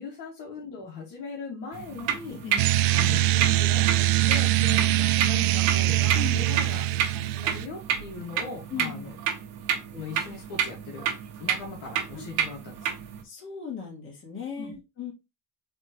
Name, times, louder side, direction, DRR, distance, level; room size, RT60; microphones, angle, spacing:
voice 1, 0.0-2.4 2.9-6.9 7.1-9.1 9.9-11.1 11.4-13.0 14.6-14.7, left 4 dB, 55° left, 1.9 m, -39 dB
sound 1, 1.7-13.2, right 9 dB, 85° right, 1.2 m, -31 dB
sound 2, 2.6-7.7, right 15 dB, 65° right, 0.5 m, -23 dB
voice 2, 6.1-6.5 8.7-9.1 12.1-12.2 13.2-15.1, left 7 dB, 30° left, 2.4 m, -37 dB
4.4 x 3.7 x 3.0 m
cardioid pair, 130°, 38 cm